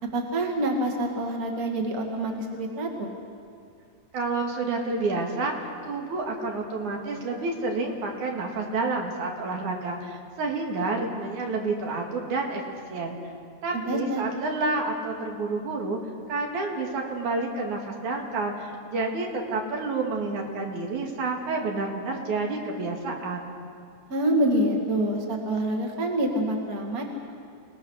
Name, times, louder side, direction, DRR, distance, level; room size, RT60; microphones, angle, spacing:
voice 1, 0.0-3.1 13.7-14.3 24.1-27.0, right 1 dB, 30° right, 1 dB, 2.5 m, -26 dB
voice 2, 4.1-5.5 5.8-13.3 13.6-16.0 16.3-23.5, right 3 dB, 75° right, 0 dB, 3.6 m, -29 dB
29.0 x 19.0 x 6.4 m, 2.3 s
omnidirectional pair, 3.5 m